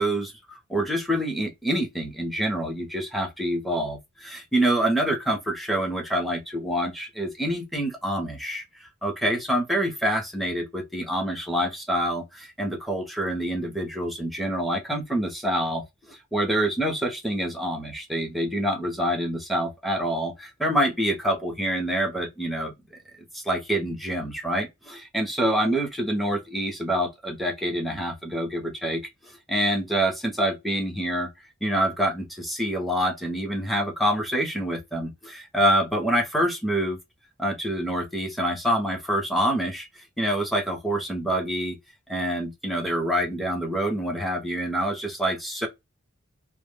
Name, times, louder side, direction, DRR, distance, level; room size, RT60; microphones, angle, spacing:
voice 1, 0.0-22.7 23.1-31.3 31.6-37.0 37.4-41.8 42.1-45.7, right 1 dB, ahead, 0.6 m, -26 dB
2.1 x 2.1 x 3.2 m
head